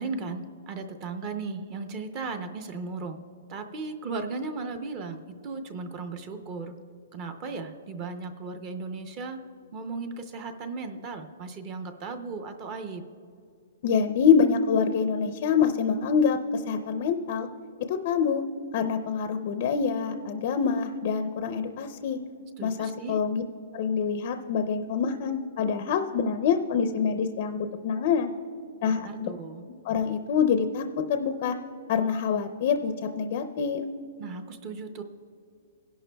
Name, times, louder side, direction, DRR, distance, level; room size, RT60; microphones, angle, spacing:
voice 1, 0.0-3.2 3.5-6.8 7.1-9.4 9.7-13.0 22.6-23.2 29.0-29.6 34.2-35.0, right 4 dB, 25° right, 7 dB, 0.5 m, -36 dB
voice 2, 13.8-17.5 17.9-18.4 18.7-22.2 22.6-23.4 23.7-28.3 28.8-29.3 29.8-30.8 31.1-31.5 31.9-33.8, left 6 dB, 35° left, 7 dB, 0.5 m, -25 dB
20.0 x 11.0 x 2.2 m, 2.5 s
hypercardioid pair, 175°, 0 cm